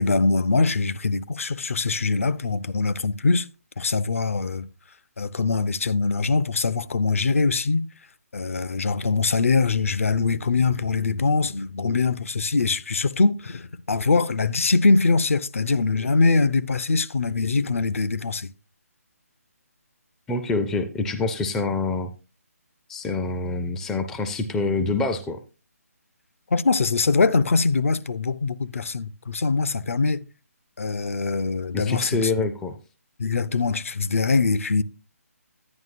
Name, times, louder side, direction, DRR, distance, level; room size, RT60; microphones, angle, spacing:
voice 1, 0.0-3.5 3.8-4.7 5.2-7.9 8.3-18.5 26.5-30.2 30.8-32.3 33.2-34.8, left 4 dB, 55° left, 0.6 m, -23 dB
voice 2, 20.3-22.1 22.9-25.4 31.7-32.8, left 3 dB, 5° left, 0.4 m, -26 dB
10.5 x 9.7 x 2.5 m
figure-of-eight pair, 145°, 8 cm